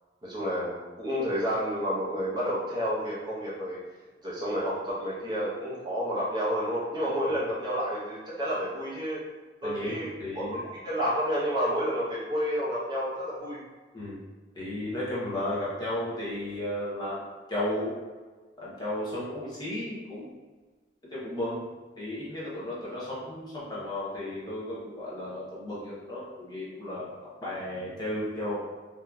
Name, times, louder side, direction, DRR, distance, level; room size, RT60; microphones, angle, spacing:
voice 1, 0.2-3.8 4.2-9.2 9.6-10.1 10.3-10.6 10.8-13.6 22.9-23.0, equal, 25° right, -8 dB, 0.8 m, -30 dB
voice 2, 9.6-10.6 13.9-14.2 14.5-17.2 17.5-18.0 18.6-20.3 21.1-21.7 22.0-28.6, left 1 dB, 20° left, -8 dB, 0.7 m, -34 dB
3.6 x 2.7 x 2.3 m, 1.4 s
head